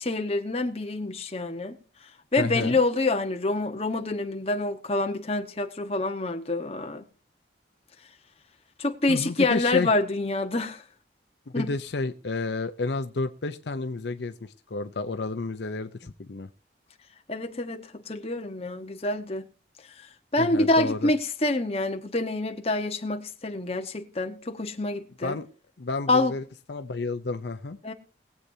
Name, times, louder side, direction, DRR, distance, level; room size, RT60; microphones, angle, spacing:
voice 1, 0.0-1.8 2.3-7.0 8.8-10.8 11.5-11.7 17.3-19.5 20.3-25.4 26.1-26.3 27.8-27.9, left 2 dB, 35° left, 1.2 m, -27 dB
voice 2, 2.4-2.8 9.1-9.9 11.5-16.5 20.4-21.1 25.2-25.5 25.8-27.8, left 3 dB, 70° left, 0.7 m, -31 dB
21.5 x 8.1 x 2.8 m
head